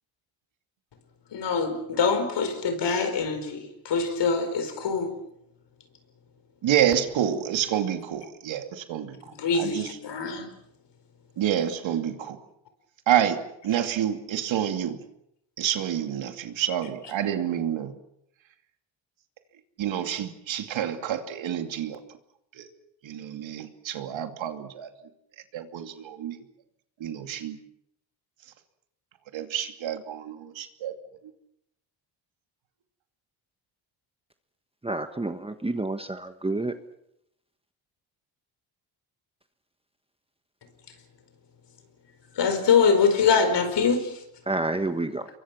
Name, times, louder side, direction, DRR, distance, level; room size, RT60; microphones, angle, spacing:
voice 1, 1.3-5.1 9.4-10.5 42.4-44.1, left 5 dB, 60° left, 4.9 m, -24 dB
voice 2, 6.6-9.9 11.4-12.4 13.1-13.4 13.6-15.0 15.6-17.9 19.8-22.0 22.6-22.7 23.0-24.9 25.5-26.4 27.0-27.6 29.3-30.9, right 10 dB, 70° right, 2.7 m, -28 dB
voice 3, 34.8-36.7 44.5-45.3, right 2 dB, 10° right, 1.3 m, -29 dB
28.0 x 23.0 x 6.1 m
cardioid pair, 95°, 48 cm